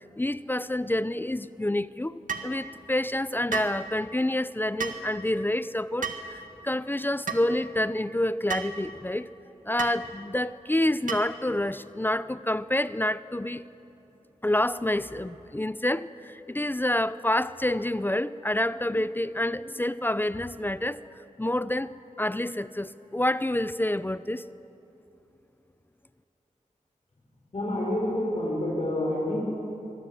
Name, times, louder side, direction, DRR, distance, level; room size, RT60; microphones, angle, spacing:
voice 1, 0.0-9.3 9.6-13.6 14.4-21.0 21.4-21.9 22.2-24.4, left 1 dB, 15° left, 16 dB, 0.5 m, -28 dB
sound 1, 2.3-2.5 3.5-3.8 4.8-5.0 6.0-6.3 7.3-7.4 8.5-8.7 9.8-10.0 11.1-11.4, right 6 dB, 75° right, 1.7 m, -32 dB
voice 2, 27.5-29.4, left 1 dB, 50° left, -5 dB, 5.6 m, -28 dB
24.5 x 20.0 x 7.5 m, 2.9 s
wide cardioid pair, 95°, 14 cm